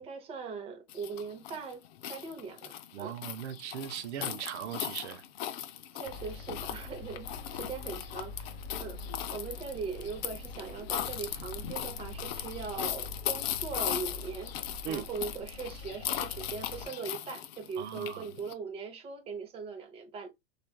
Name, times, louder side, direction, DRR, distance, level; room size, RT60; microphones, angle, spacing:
voice 1, 0.0-1.8 2.1-3.1 5.9-9.0 9.3-14.5 14.9-20.3, right 5 dB, 15° right, 0.7 m, -40 dB
sound 1, 0.9-18.5, left 11 dB, 60° left, 0.5 m, -38 dB
voice 2, 2.9-5.2 14.8-15.1 17.8-18.3, right 9 dB, 70° right, 0.7 m, -38 dB
sound 2, 6.0-16.9, left 2 dB, 40° left, 1.2 m, -45 dB
3.2 x 2.4 x 2.2 m
hypercardioid pair, 125°, 35 cm